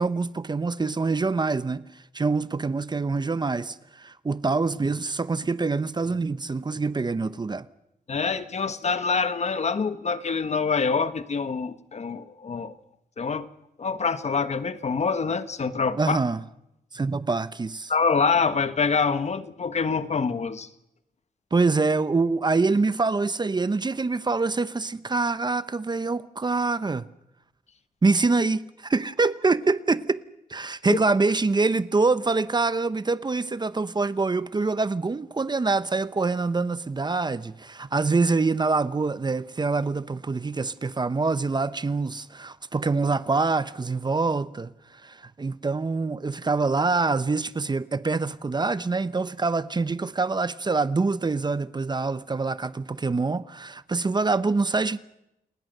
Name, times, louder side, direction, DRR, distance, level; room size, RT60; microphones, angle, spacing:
voice 1, 0.0-7.7 16.0-16.4 16.9-17.9 21.5-27.0 28.0-30.2 30.5-55.0, right 3 dB, 30° right, 0.8 m, -25 dB
voice 2, 8.1-12.8 13.2-13.5 13.8-16.2 17.9-20.7 30.9-31.0, left 5 dB, 45° left, 1.3 m, -25 dB
29.5 x 20.5 x 6.7 m
wide cardioid pair, 110°, 16 cm